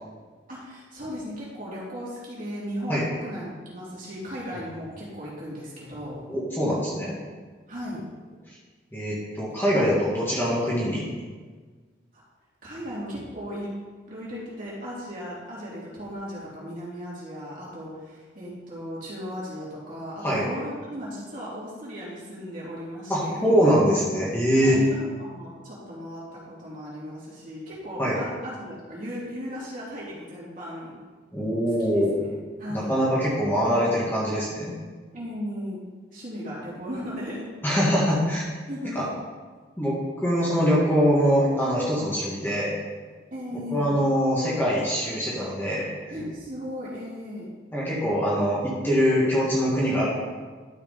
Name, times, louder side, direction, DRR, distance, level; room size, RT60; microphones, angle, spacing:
voice 1, 0.5-6.2 7.7-8.0 12.1-12.2 12.6-13.7 14.1-23.7 24.6-30.9 31.8-32.3 32.6-33.0 35.1-35.8 36.1-37.5 38.7-39.1 42.3-42.6 43.3-43.9 46.1-47.5 49.9-50.0, equal, 45° right, -7 dB, 3.2 m, -36 dB
voice 2, 6.3-7.1 8.9-11.0 20.2-20.4 23.1-24.8 28.0-28.2 31.3-32.2 32.7-34.7 37.6-38.5 39.0-39.1 39.8-42.7 43.7-46.2 47.7-50.1, equal, 10° left, -7 dB, 1.8 m, -23 dB
12.0 x 5.0 x 5.3 m, 1.4 s
head